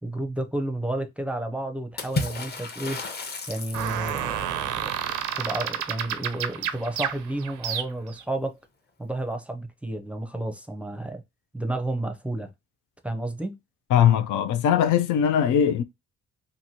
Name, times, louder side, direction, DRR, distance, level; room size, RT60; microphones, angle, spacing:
voice 1, 0.0-3.0 3.5-4.9 5.4-8.5 9.0-11.2 11.5-12.5 13.0-13.6, right 1 dB, 5° right, 0.5 m, -31 dB
Water / Splash splatter, 2.0-4.3, left 2 dB, 35° left, 0.7 m, -32 dB
sound 1, 3.7-8.2, right 10 dB, 80° right, 0.6 m, -30 dB
voice 2, 13.9-15.8, left 9 dB, 80° left, 0.5 m, -20 dB
2.9 x 2.6 x 2.7 m
cardioid pair, 90°, 30 cm